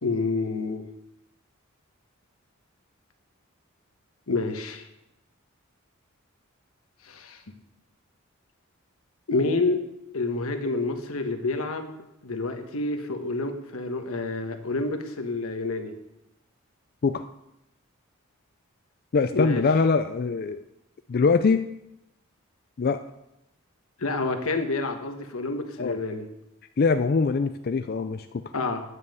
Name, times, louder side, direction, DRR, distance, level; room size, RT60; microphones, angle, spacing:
voice 1, 0.0-0.8 4.3-4.9 7.0-7.4 9.3-9.8 10.1-12.0 12.2-15.9 19.3-19.6 24.0-26.2 28.5-28.8, left 3 dB, 85° left, 6 dB, 1.3 m, -28 dB
voice 2, 19.1-20.6 21.1-21.7 22.8-23.0 25.8-26.0 26.8-28.4, left 4 dB, 45° left, 8 dB, 0.4 m, -23 dB
9.8 x 5.4 x 7.9 m, 0.87 s
head